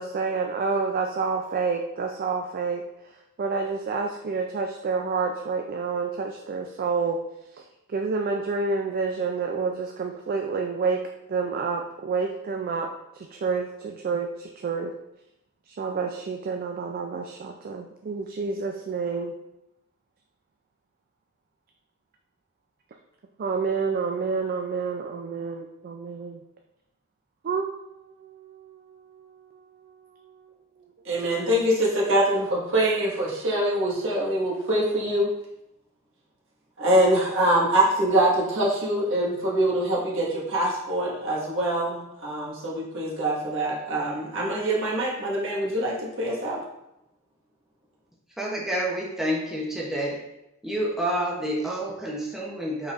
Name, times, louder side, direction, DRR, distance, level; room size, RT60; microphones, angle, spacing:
voice 1, 0.0-2.8 3.4-7.2 7.5-7.6 7.9-11.0 11.3-12.9 13.1-14.9 15.7-19.3 23.4-26.4 27.4-30.5, right 4 dB, 45° right, 2 dB, 0.3 m, -29 dB
voice 2, 31.0-35.3 36.8-46.6, right 1 dB, 65° right, -5 dB, 1.5 m, -24 dB
voice 3, 48.4-50.2 50.6-52.9, right 1 dB, ahead, -4 dB, 0.7 m, -28 dB
5.3 x 3.9 x 2.4 m, 0.87 s
head